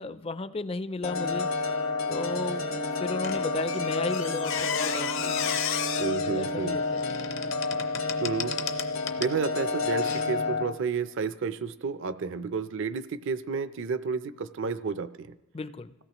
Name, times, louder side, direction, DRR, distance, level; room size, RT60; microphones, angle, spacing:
voice 1, 0.0-1.5 2.1-5.6 6.3-7.6 15.5-15.9, left 3 dB, 25° left, 13 dB, 0.4 m, -35 dB
sound 1, 1.0-10.6, left 3 dB, 85° left, 1.3 m, -30 dB
Squeak, 3.2-9.4 10.0-10.2, left 8 dB, 60° left, 0.7 m, -34 dB
voice 2, 6.0-6.8 8.2-8.6 9.2-15.3, right 5 dB, 60° right, 13 dB, 0.5 m, -31 dB
26.0 x 16.5 x 3.0 m, 1.1 s
head